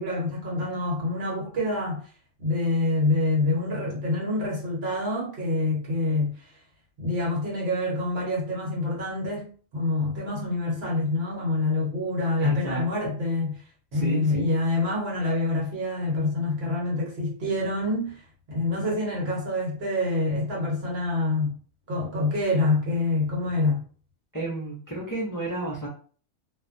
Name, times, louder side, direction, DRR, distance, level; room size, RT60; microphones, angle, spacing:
voice 1, 0.0-2.0 2.4-6.5 7.0-13.6 13.9-18.2 18.5-21.5 21.9-23.8, left 2 dB, 55° right, 1.1 m, -26 dB
voice 2, 12.4-13.1 13.9-14.5 24.3-25.9, right 1 dB, 25° left, 0.4 m, -32 dB
2.5 x 2.1 x 2.5 m
omnidirectional pair, 1.4 m